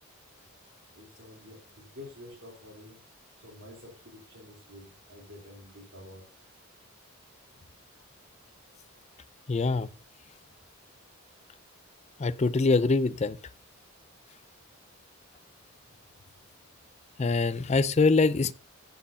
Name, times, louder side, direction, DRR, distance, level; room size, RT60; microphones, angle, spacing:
voice 1, 0.9-3.0 3.4-6.2, left 1 dB, 55° right, 3.3 m, -49 dB
voice 2, 9.5-9.9 12.2-13.4 17.2-18.5, left 3 dB, 30° left, 0.4 m, -24 dB
15.0 x 7.5 x 2.7 m
head